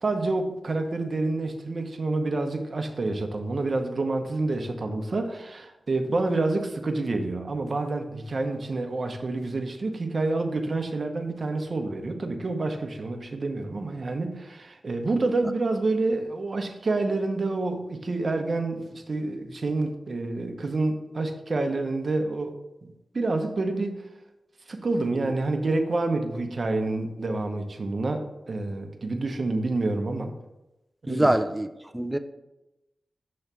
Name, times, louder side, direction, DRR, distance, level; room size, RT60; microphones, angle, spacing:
voice 1, 0.0-22.5 23.1-24.0 24.7-30.3 31.0-31.3, right 2 dB, 55° right, 0.8 m, -28 dB
voice 2, 31.1-31.7 31.9-32.2, right 1 dB, 15° right, 0.4 m, -23 dB
6.7 x 3.2 x 6.0 m
cardioid pair, 65°, 0 cm